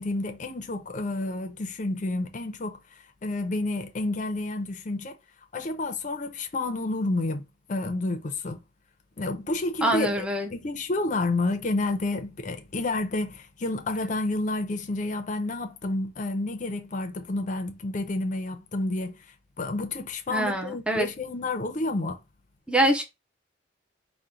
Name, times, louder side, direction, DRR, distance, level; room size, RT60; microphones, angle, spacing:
voice 1, 0.0-2.8 3.2-5.2 5.5-8.6 9.2-10.2 10.5-19.3 19.6-22.2, left 2 dB, 40° left, 0.5 m, -30 dB
voice 2, 9.8-10.5 20.3-21.1 22.7-23.0, right 1 dB, 5° right, 0.5 m, -24 dB
3.8 x 2.1 x 4.3 m
head